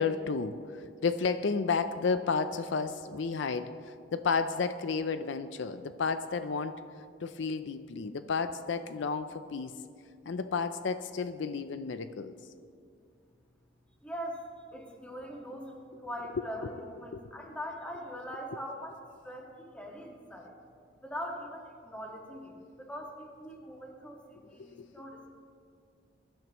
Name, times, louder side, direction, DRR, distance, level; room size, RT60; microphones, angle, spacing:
voice 1, 0.0-6.8 7.2-9.8 10.3-12.3 16.6-16.7 17.1-17.3 24.6-24.9, left 5 dB, 65° left, 11 dB, 0.4 m, -32 dB
voice 2, 14.0-14.4 14.7-19.0 19.2-20.5 21.0-25.3, equal, 5° left, -1 dB, 1.6 m, -42 dB
22.5 x 12.0 x 3.0 m, 2.4 s
head